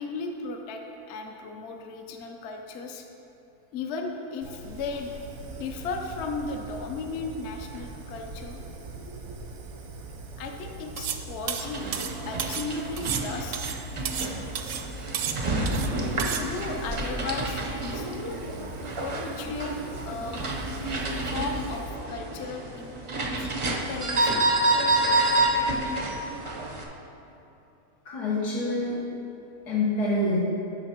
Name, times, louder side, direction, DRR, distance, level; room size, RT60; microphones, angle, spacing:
voice 1, 0.0-3.1 3.7-8.6 10.4-11.9 12.2-13.6 16.3-18.4 19.0-19.7 20.0-20.4 21.3-24.5, left 4 dB, 60° left, 3 dB, 0.8 m, -36 dB
Fire, 4.4-21.9, right 3 dB, 90° right, 1.4 m, -42 dB
sound 1, 11.0-11.2 11.5-12.7 13.0-14.3 14.6-14.9 15.1-15.9 16.2-16.4, right 9 dB, 70° right, 0.8 m, -32 dB
sound 2, 11.5-26.8, right 2 dB, 55° right, 0.3 m, -29 dB
voice 2, 28.0-29.1 29.7-30.4, left 2 dB, 90° left, -7 dB, 1.8 m, -26 dB
8.6 x 5.7 x 4.5 m, 2.9 s
omnidirectional pair, 1.6 m